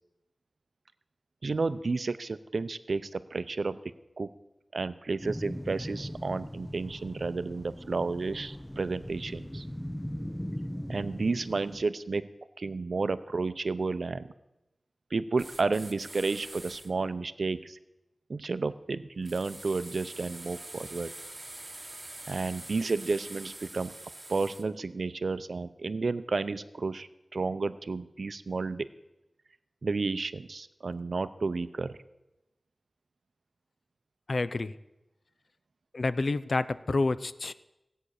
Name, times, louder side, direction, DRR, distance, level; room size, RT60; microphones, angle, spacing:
voice 1, 1.4-3.8 4.2-4.3 4.7-9.6 10.9-12.2 12.6-14.3 15.1-17.8 18.3-21.1 22.3-23.9 24.3-28.9 29.8-32.0, right 3 dB, 75° right, 13 dB, 0.6 m, -31 dB
sound 1, 5.2-11.8, equal, 10° left, 0.6 m, -39 dB
sound 2, 15.4-16.9 19.2-24.6, right 2 dB, 35° right, 1.5 m, -45 dB
voice 2, 34.3-34.8 35.9-37.5, left 3 dB, 65° left, 15 dB, 0.5 m, -28 dB
16.5 x 8.9 x 6.5 m, 0.96 s
wide cardioid pair, 65°, 0 cm